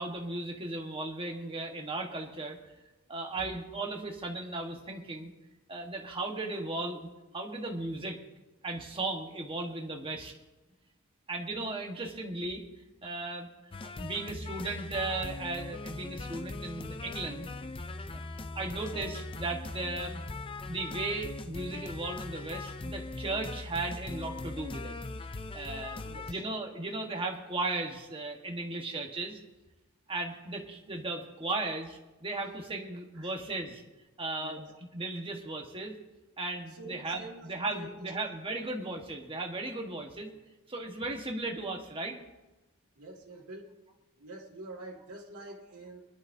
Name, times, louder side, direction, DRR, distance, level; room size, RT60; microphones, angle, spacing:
voice 1, 0.0-2.6 3.1-5.3 5.7-7.1 7.3-8.2 8.6-10.3 11.3-12.7 13.0-13.5 14.0-17.5 18.5-20.2 20.7-25.0 25.3-26.0 26.3-29.4 30.1-33.8 34.2-34.7 34.9-36.0 36.4-40.3 40.7-42.2, right 2 dB, 25° right, 2 dB, 1.3 m, -36 dB
sound 1, 13.7-26.3, left 2 dB, 25° left, 0.5 m, -40 dB
voice 2, 25.7-26.4 33.1-33.3 34.4-34.6 36.7-38.1 43.0-43.7 44.2-46.0, right 1 dB, 80° right, -3 dB, 2.0 m, -46 dB
23.5 x 11.0 x 2.7 m, 1.1 s
head